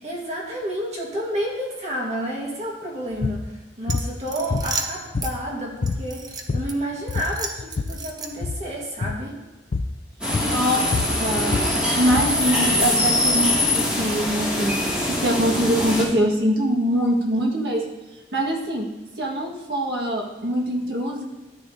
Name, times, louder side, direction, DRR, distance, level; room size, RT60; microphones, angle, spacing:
voice 1, 0.0-9.3, equal, 35° right, -3 dB, 1.6 m, -30 dB
sound 1, 3.1-3.4 3.9-4.1 4.5-5.5 5.8-6.1 6.3-6.8 7.1-8.0 8.3-8.6 9.0-9.2 9.7-10.0 10.3-12.4, left 3 dB, 45° left, 0.4 m, -27 dB
sound 2, 3.9-5.3 5.9-6.7 7.1-8.5, right 4 dB, 20° right, 0.7 m, -33 dB
sound 3, 10.2-16.0, left 1 dB, 5° right, 2.3 m, -23 dB
voice 2, 10.4-10.9 11.2-11.6 11.9-17.9 18.3-18.9 19.2-21.2, equal, 60° right, -1 dB, 1.7 m, -23 dB
13.0 x 9.1 x 2.7 m, 1.1 s
head